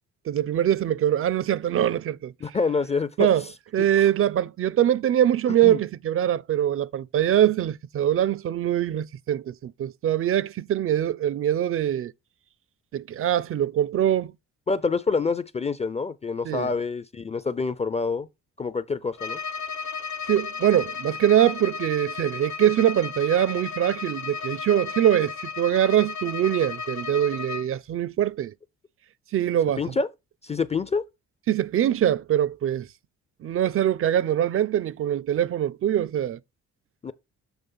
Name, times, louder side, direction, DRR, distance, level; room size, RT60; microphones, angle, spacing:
voice 1, 0.3-2.3 3.2-3.4 3.7-12.1 12.9-14.3 16.5-16.7 20.3-28.5 29.3-30.0 31.5-32.9 33.4-36.4, right 11 dB, 45° right, 0.4 m, -23 dB
voice 2, 2.4-3.3 5.6-5.8 14.7-18.3 18.6-19.4 29.8-30.1 30.4-31.0 37.0-37.1, left 4 dB, 20° left, 0.4 m, -26 dB
Bowed string instrument, 19.1-27.7, left 5 dB, 65° left, 1.0 m, -34 dB
7.1 x 3.2 x 5.4 m
cardioid pair, 90°, 30 cm